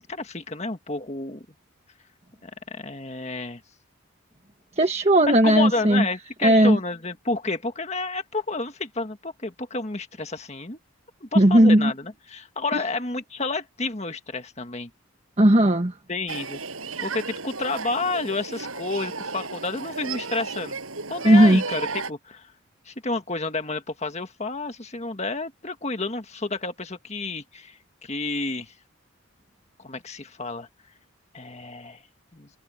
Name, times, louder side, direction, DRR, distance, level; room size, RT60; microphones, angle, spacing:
voice 1, 0.1-1.5 2.4-3.6 5.3-10.8 11.2-14.9 16.1-16.6 17.0-20.8 21.1-22.5 22.9-28.7 29.8-30.7 31.3-32.0 32.3-32.5, left 3 dB, 30° left, 1.7 m, -30 dB
voice 2, 4.8-6.0 6.4-6.8 11.3-11.9 12.7-12.8 15.4-15.9 21.2-21.6, right 1 dB, 30° right, 1.4 m, -16 dB
Human group actions, 16.3-22.1, right 4 dB, 80° right, 7.4 m, -34 dB
head